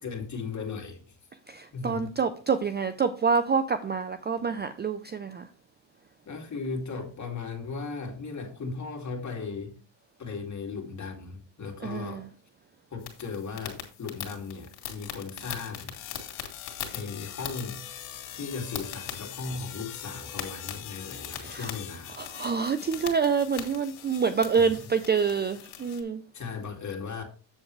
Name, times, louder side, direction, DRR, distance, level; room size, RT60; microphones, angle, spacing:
voice 1, 0.0-1.2 1.7-2.1 6.3-9.8 10.2-12.3 12.9-15.9 16.9-17.8 18.3-22.2 24.6-24.8 26.3-27.2, left 4 dB, 35° left, 2.4 m, -37 dB
voice 2, 1.5-5.5 11.8-12.2 21.4-21.7 22.2-26.2, right 5 dB, 20° right, 0.5 m, -27 dB
sound 1, 13.0-26.0, left 10 dB, 80° left, 2.1 m, -40 dB
7.8 x 7.2 x 3.2 m
supercardioid pair, 95°, 48 cm